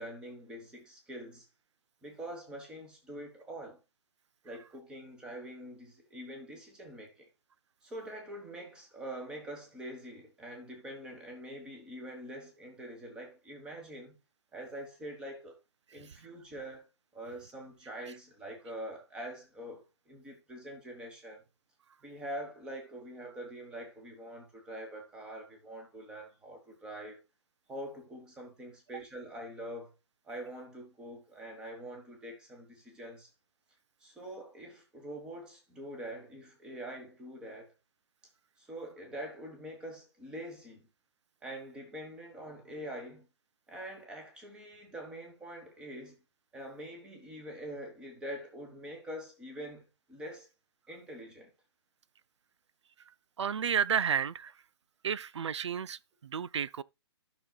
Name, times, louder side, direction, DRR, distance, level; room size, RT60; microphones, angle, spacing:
voice 1, 0.0-1.5 2.0-3.8 4.4-7.3 7.8-14.2 14.5-15.6 15.9-16.9 17.1-21.4 22.0-27.2 27.7-29.9 30.2-33.3 34.0-37.7 38.6-40.9 41.4-43.3 43.7-46.2 46.5-50.5 50.9-51.5, right 1 dB, 5° right, 1.3 m, -44 dB
voice 2, 53.4-54.5 55.0-56.8, right 8 dB, 85° right, 0.5 m, -31 dB
12.5 x 6.1 x 2.3 m
hypercardioid pair, 170°, 14 cm